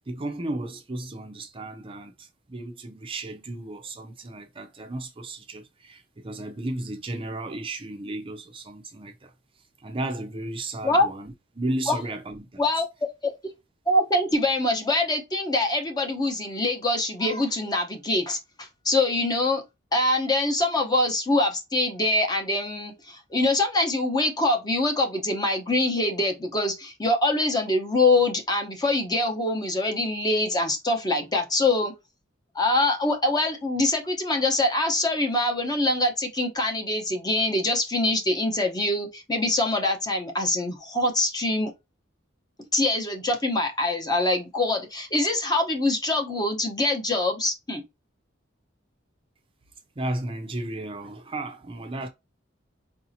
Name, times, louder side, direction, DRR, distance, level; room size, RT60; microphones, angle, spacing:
voice 1, 0.1-9.3 9.8-12.7 50.0-52.1, right 2 dB, 25° right, 0.5 m, -34 dB
voice 2, 13.9-19.6 19.9-31.9 32.5-41.7 42.7-47.8, left 2 dB, 20° left, 0.9 m, -24 dB
4.8 x 2.7 x 2.7 m
head